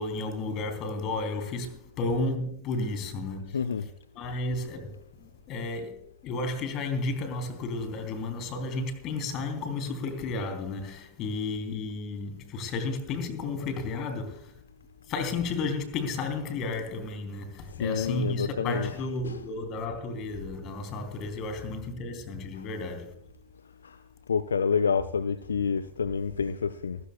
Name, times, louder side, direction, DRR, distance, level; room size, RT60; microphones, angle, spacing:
voice 1, 0.0-3.6 4.1-14.5 15.1-23.1, left 3 dB, 35° left, 3.2 m, -33 dB
voice 2, 3.5-3.9 17.8-19.4 22.5-22.6 23.8-24.0 24.3-27.0, left 6 dB, 70° left, 0.5 m, -28 dB
27.5 x 13.5 x 2.3 m
figure-of-eight pair, 90°, 0 cm